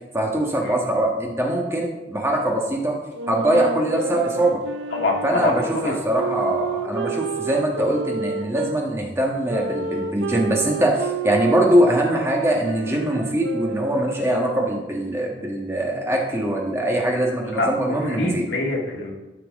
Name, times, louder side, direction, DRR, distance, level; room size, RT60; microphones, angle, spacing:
voice 1, 0.1-3.0 3.3-4.6 5.2-18.5, right 1 dB, 15° right, -1 dB, 1.3 m, -22 dB
sound 1, 3.1-8.8 9.5-15.0, right 5 dB, 80° right, 0.5 m, -30 dB
voice 2, 4.9-5.5 5.8-5.9 17.5-19.1, left 2 dB, 80° left, -1 dB, 1.8 m, -25 dB
13.0 x 5.9 x 3.6 m, 1.2 s
head